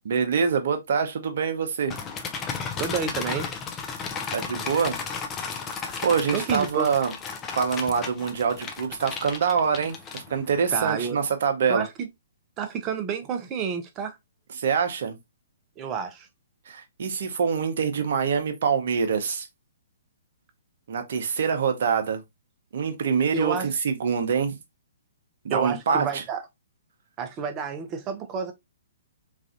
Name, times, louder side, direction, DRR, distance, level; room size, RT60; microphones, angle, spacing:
voice 1, 0.1-1.9 4.3-5.0 5.8-7.1 7.6-11.9 14.5-15.2 16.7-19.5 20.9-22.2 22.7-24.6 25.4-26.2, right 6 dB, 60° right, 0.7 m, -25 dB
sound 1, 1.9-10.6, left 5 dB, 20° left, 0.5 m, -34 dB
voice 2, 2.8-3.5 6.3-6.9 10.7-11.2 11.7-12.1 12.6-14.2 15.8-16.3 23.3-23.7 25.5-26.4 27.2-28.5, right 6 dB, 25° right, 0.6 m, -29 dB
3.2 x 2.5 x 2.5 m
hypercardioid pair, 130°, 0 cm